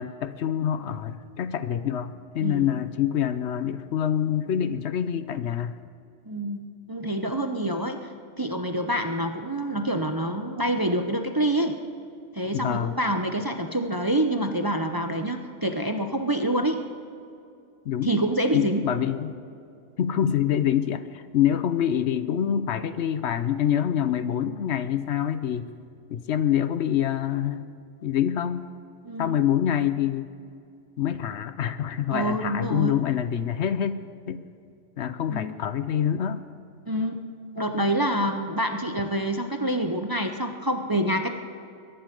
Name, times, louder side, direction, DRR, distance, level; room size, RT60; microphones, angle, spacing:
voice 1, 0.0-5.8 12.5-13.0 17.8-18.2 18.5-19.4 20.0-25.7 26.1-27.7 28.0-28.7 29.2-30.3 31.0-34.0 34.3-34.4 35.0-36.4, left 9 dB, 65° left, 12 dB, 0.9 m, -26 dB
voice 2, 2.4-2.8 6.2-8.1 8.4-11.8 12.3-16.8 18.0-18.8 29.0-29.4 32.1-32.9 35.3-35.6 36.9-37.2 37.6-41.3, right 1 dB, 20° right, 5 dB, 0.6 m, -27 dB
22.0 x 10.5 x 5.2 m, 2.5 s
omnidirectional pair, 1.3 m